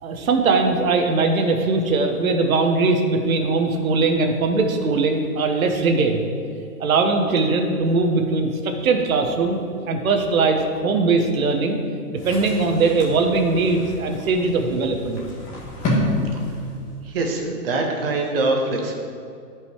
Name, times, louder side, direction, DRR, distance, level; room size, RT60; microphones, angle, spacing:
voice 1, 0.0-6.2 6.8-9.6 9.9-11.8 12.1-15.2, right 3 dB, 60° right, 4 dB, 1.3 m, -20 dB
sound 1, 12.2-17.1, left 1 dB, 15° left, 1.6 m, -29 dB
voice 2, 17.0-19.0, right 2 dB, 35° right, 2 dB, 1.5 m, -23 dB
11.5 x 5.5 x 4.7 m, 2.4 s
hypercardioid pair, 160°, 47 cm